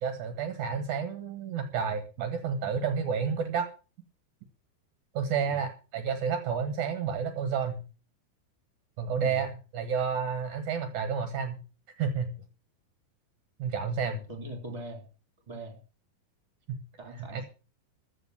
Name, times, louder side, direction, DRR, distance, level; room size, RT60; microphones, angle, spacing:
voice 1, 0.0-3.7 5.1-7.8 9.0-11.6 12.0-12.3 13.6-14.2 16.7-16.8 17.3-17.5, right 6 dB, 60° right, 9 dB, 2.5 m, -30 dB
voice 2, 14.0-15.1 15.5-15.8 17.0-17.5, right 1 dB, 10° right, 4 dB, 3.3 m, -41 dB
14.5 x 5.4 x 9.7 m, 0.36 s
omnidirectional pair, 4.7 m